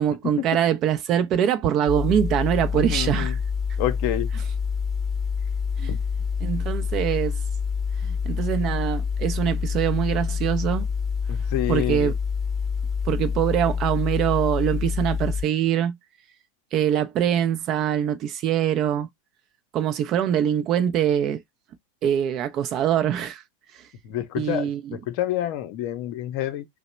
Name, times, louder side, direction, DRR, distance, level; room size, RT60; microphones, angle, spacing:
voice 1, 0.0-3.4 5.8-5.9 6.4-7.4 8.0-10.8 11.7-12.1 13.1-16.0 16.7-19.1 19.7-21.4 22.0-23.4 24.4-25.0, right 9 dB, 40° right, 0.4 m, -23 dB
sound 1, 1.9-15.4, left 6 dB, 15° left, 0.8 m, -27 dB
voice 2, 2.7-3.4 3.8-4.3 5.9-6.0 11.3-12.1 24.0-26.7, left 13 dB, 50° left, 0.6 m, -28 dB
2.8 x 2.1 x 4.1 m
figure-of-eight pair, 90°, 0 cm